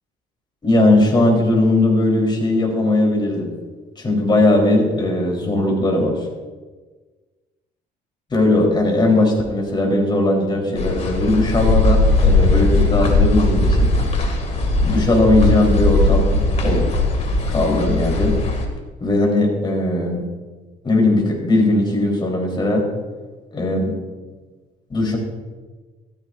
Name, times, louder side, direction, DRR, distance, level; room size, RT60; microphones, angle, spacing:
voice 1, 0.6-3.5 4.0-6.3 8.3-13.9 14.8-16.8 17.5-18.4 19.0-20.2 20.8-22.9 23.5-23.9 24.9-25.2, left 2 dB, 25° left, 0 dB, 3.8 m, -18 dB
sound 1, 10.8-18.7, left 2 dB, 40° left, 2.3 m, -18 dB
15.0 x 13.5 x 2.6 m, 1.3 s
cardioid pair, 110°, 17 cm